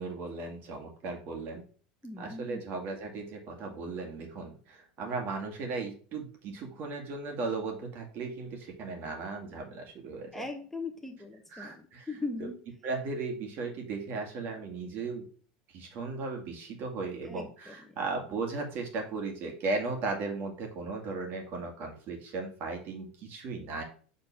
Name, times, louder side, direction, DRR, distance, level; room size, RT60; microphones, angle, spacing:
voice 1, 0.0-1.6 2.2-10.4 11.5-12.1 12.8-15.3 15.7-23.8, right 3 dB, 50° right, 3 dB, 2.1 m, -36 dB
voice 2, 2.0-2.6 10.3-12.5 17.2-17.7, left 3 dB, 5° left, 3 dB, 0.9 m, -39 dB
5.4 x 3.8 x 5.5 m, 0.42 s
supercardioid pair, 105°, 4 cm